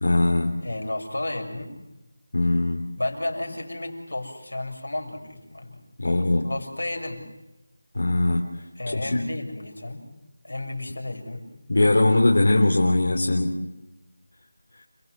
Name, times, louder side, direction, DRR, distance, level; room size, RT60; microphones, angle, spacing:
voice 1, 0.0-0.5 2.3-2.9 6.0-6.5 8.0-8.5 8.9-9.2 11.7-13.5, left 2 dB, 65° left, 0 dB, 3.6 m, -20 dB
voice 2, 0.6-1.7 3.0-5.8 6.0-7.2 8.8-10.1 10.4-11.4, left 2 dB, 85° left, 1 dB, 7.0 m, -32 dB
30.0 x 17.5 x 8.0 m, 0.96 s
figure-of-eight pair, 175°, 0 cm